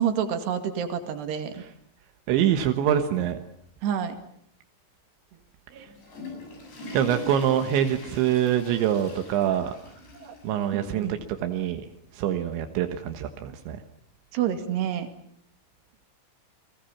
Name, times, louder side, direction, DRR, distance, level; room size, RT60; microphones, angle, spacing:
voice 1, 0.0-1.6 3.8-4.1 5.7-5.9 10.2-10.3 10.7-11.2 14.3-15.1, right 9 dB, 70° right, 8 dB, 4.2 m, -28 dB
voice 2, 2.3-3.4 5.8-5.9 6.9-9.7 10.4-11.8 12.1-13.8, right 10 dB, 85° right, 6 dB, 3.7 m, -25 dB
Water / Toilet flush, 5.7-10.7 11.0-11.1 11.9-12.0 13.2-13.3, left 3 dB, 70° left, 9.3 m, -42 dB
30.0 x 22.0 x 7.3 m, 0.70 s
omnidirectional pair, 5.1 m